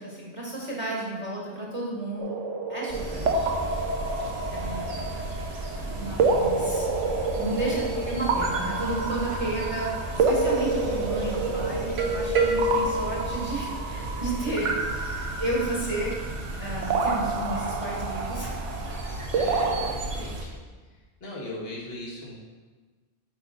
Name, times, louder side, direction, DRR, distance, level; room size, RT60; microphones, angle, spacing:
voice 1, 0.0-2.4 2.7-3.5 3.9-4.0 4.5-5.0 5.9-6.9 7.3-18.6, right 1 dB, 30° right, -4 dB, 1.3 m, -32 dB
sound 1, 2.2-19.9, right 3 dB, 85° right, 1.1 m, -29 dB
sound 2, 2.9-20.4, right 1 dB, 60° right, 1.2 m, -33 dB
voice 2, 7.6-8.0 19.3-20.5 21.2-22.3, left 2 dB, 55° left, -3 dB, 1.7 m, -39 dB
8.4 x 5.2 x 3.7 m, 1.4 s
omnidirectional pair, 1.2 m